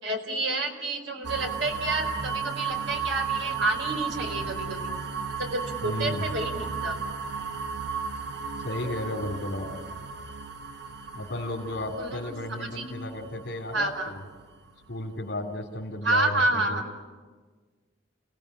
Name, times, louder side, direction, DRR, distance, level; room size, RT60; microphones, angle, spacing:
voice 1, 0.0-4.8 5.4-7.0 12.0-12.3 12.6-12.9 13.7-14.1 16.0-16.8, right 2 dB, 80° right, 4 dB, 4.5 m, -29 dB
sound 1, 1.2-15.0, right 5 dB, 65° right, 1.6 m, -34 dB
voice 2, 5.8-6.3 8.6-9.7 11.1-14.2 14.9-16.8, left 1 dB, 70° left, -2 dB, 3.2 m, -33 dB
29.5 x 18.0 x 10.0 m, 1.4 s
head